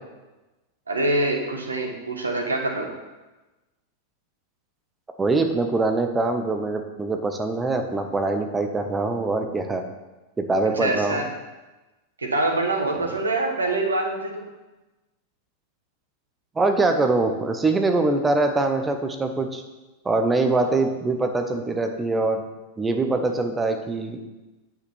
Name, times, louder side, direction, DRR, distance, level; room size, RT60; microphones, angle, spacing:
voice 1, 0.9-2.9 10.8-11.2 12.2-14.5, right 2 dB, 75° right, 2 dB, 1.3 m, -25 dB
voice 2, 5.2-9.8 10.4-11.3 13.0-13.1 16.6-19.6 20.0-22.4 22.8-24.2, right 3 dB, 15° right, 5 dB, 0.9 m, -23 dB
8.0 x 6.0 x 4.4 m, 1.1 s
figure-of-eight pair, 90°, 0 cm